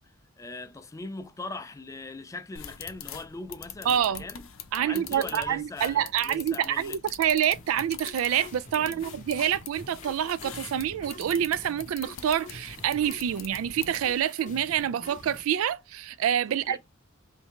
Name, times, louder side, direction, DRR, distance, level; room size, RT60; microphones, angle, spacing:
voice 1, 0.4-4.5 4.7-7.0 8.7-9.0 16.5-16.8, left 3 dB, 15° left, 0.3 m, -40 dB
sound 1, 2.5-14.2, left 9 dB, 75° left, 0.5 m, -44 dB
voice 2, 3.9-4.2 4.7-16.8, right 10 dB, 85° right, 0.3 m, -27 dB
sound 2, 7.5-15.5, left 2 dB, 40° left, 0.8 m, -47 dB
3.4 x 2.7 x 3.5 m
head